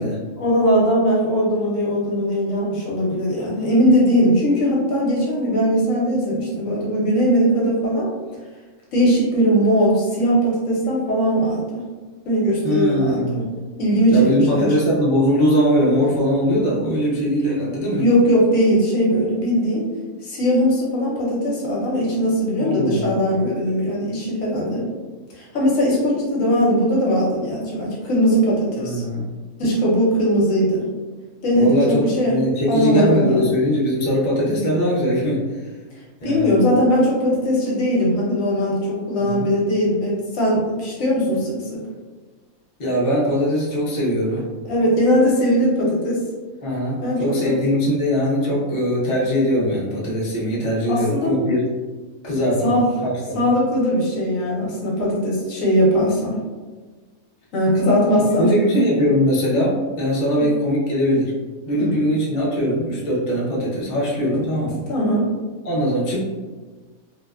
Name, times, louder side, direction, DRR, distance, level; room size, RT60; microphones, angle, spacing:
voice 1, 0.4-8.1 8.9-11.9 12.2-13.5 13.8-14.7 18.0-19.9 20.2-24.9 25.3-29.0 29.6-30.9 31.4-32.4 32.7-33.4 36.2-41.8 44.6-46.2 47.0-47.5 50.9-51.3 52.6-52.9 53.3-56.4 57.5-58.9 60.4-60.5 61.8-62.0 64.9-65.3, equal, 65° left, -4 dB, 1.0 m, -19 dB
voice 2, 12.6-13.5 14.1-18.0 22.6-23.2 28.8-29.3 31.5-35.7 36.2-36.5 39.2-39.5 42.8-44.5 46.6-51.6 52.2-53.5 58.4-61.3 61.7-64.8 65.6-66.2, equal, 45° left, -6 dB, 0.6 m, -21 dB
2.7 x 2.1 x 2.3 m, 1.4 s
omnidirectional pair, 1.6 m